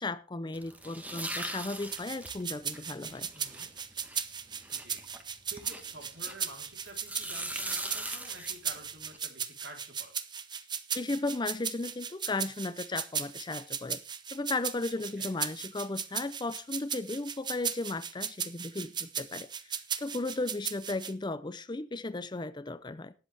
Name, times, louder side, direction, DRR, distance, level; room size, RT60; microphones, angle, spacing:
voice 1, 0.0-3.3 10.9-14.0 14.3-23.1, left 2 dB, 25° left, 0.5 m, -35 dB
sound 1, 0.5-6.5 6.9-9.2, right 1 dB, 10° right, 1.3 m, -40 dB
sound 2, 1.9-21.1, right 7 dB, 25° right, 0.7 m, -36 dB
voice 2, 3.3-3.7 4.7-5.1 5.5-10.1 15.1-15.4, right 2 dB, 70° right, 3.7 m, -50 dB
18.5 x 7.9 x 3.4 m
head